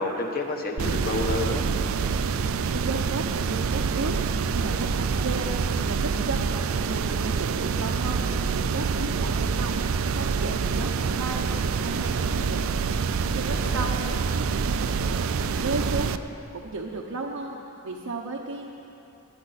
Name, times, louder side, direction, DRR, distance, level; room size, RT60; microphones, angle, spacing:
voice 1, 0.0-1.6 13.5-13.9, left 2 dB, 45° left, 2 dB, 1.2 m, -29 dB
sound 1, 0.8-16.2, right 5 dB, 65° right, 0.4 m, -26 dB
voice 2, 2.5-4.1 4.5-6.5 6.8-8.3 8.5-9.8 10.1-11.5 11.8-12.7 13.2-14.0 14.3-16.2 16.5-17.6 17.8-18.7, right 3 dB, 85° right, 0 dB, 0.9 m, -34 dB
20.5 x 9.6 x 4.2 m, 2.8 s
head